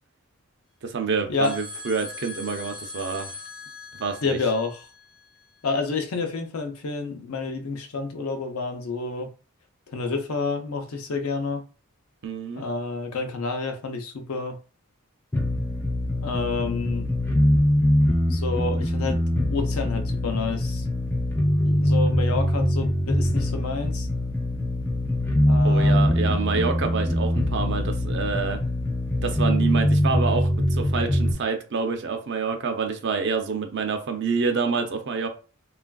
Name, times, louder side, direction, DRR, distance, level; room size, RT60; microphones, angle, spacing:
voice 1, 0.8-3.3 4.0-4.4 12.2-12.7 25.6-28.6 29.2-35.3, right 5 dB, 50° right, 0.5 m, -27 dB
sound 1, 1.4-5.8, left 3 dB, 40° left, 0.8 m, -41 dB
voice 2, 4.2-4.8 5.6-9.3 9.9-11.6 12.5-14.6 16.2-17.0 18.3-19.2 19.5-20.8 21.6-24.1 25.5-26.2, left 4 dB, 75° left, 0.6 m, -29 dB
sound 2, 15.3-31.3, left 1 dB, 10° left, 0.4 m, -23 dB
3.2 x 2.4 x 2.3 m
head